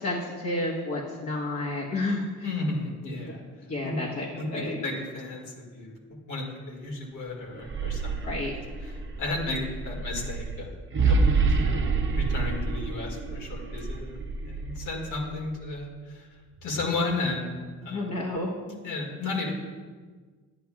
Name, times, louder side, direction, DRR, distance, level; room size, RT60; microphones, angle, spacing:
voice 1, 0.0-2.5 3.7-4.8 8.2-8.5 17.9-18.6, left 2 dB, 60° left, -4 dB, 1.3 m, -31 dB
voice 2, 2.4-3.4 3.8-4.0 4.3-8.4 9.2-10.7 11.1-14.2 14.4-16.3 16.6-17.5 17.8-18.1 18.7-19.5, left 2 dB, 80° left, -2 dB, 2.1 m, -33 dB
sound 1, 7.5-15.6, right 4 dB, 40° right, 0.9 m, -28 dB
10.5 x 8.5 x 2.3 m, 1.5 s
cardioid pair, 90°, 30 cm